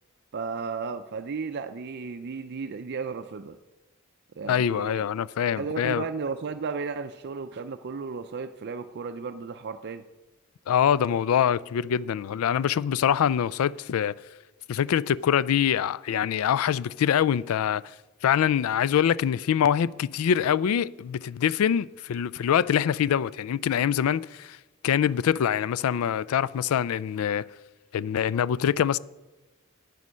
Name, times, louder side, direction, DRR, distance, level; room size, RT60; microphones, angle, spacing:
voice 1, 0.3-3.6 4.4-5.0 5.6-10.0, right 5 dB, 55° right, 0.5 m, -34 dB
voice 2, 4.5-6.0 10.7-14.2 14.7-17.8 18.2-24.6 24.8-27.4 27.9-29.0, left 9 dB, 85° left, 0.3 m, -24 dB
9.7 x 9.4 x 6.2 m
head